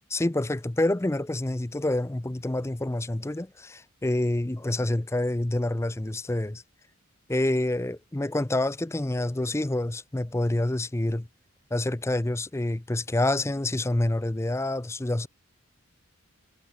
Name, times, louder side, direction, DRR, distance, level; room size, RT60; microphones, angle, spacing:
voice 1, 0.1-6.6 7.3-11.3 11.7-15.3, left 1 dB, 10° left, 0.5 m, -27 dB
head